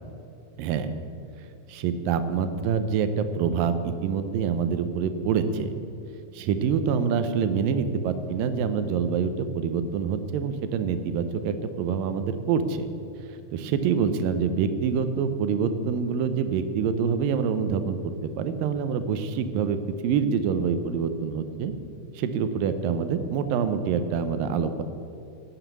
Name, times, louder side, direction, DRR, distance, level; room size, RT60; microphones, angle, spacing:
voice 1, 0.6-0.9 1.7-5.7 6.3-12.9 13.5-21.7 22.1-24.8, right 6 dB, 90° right, 10 dB, 2.5 m, -26 dB
11.5 x 7.2 x 8.1 m, 2.5 s
omnidirectional pair, 3.9 m